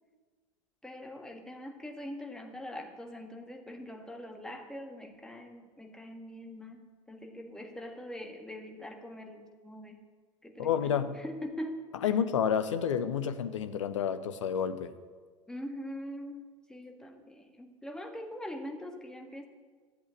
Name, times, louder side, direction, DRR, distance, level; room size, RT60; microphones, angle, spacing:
voice 1, 0.8-6.8 7.1-10.0 10.4-11.8 15.5-16.4 16.7-19.5, left 1 dB, 5° left, 4 dB, 1.8 m, -43 dB
voice 2, 10.6-11.2 12.0-15.0, left 8 dB, 65° left, 11 dB, 0.9 m, -30 dB
13.5 x 8.2 x 8.7 m, 1.5 s
figure-of-eight pair, 75°, 17 cm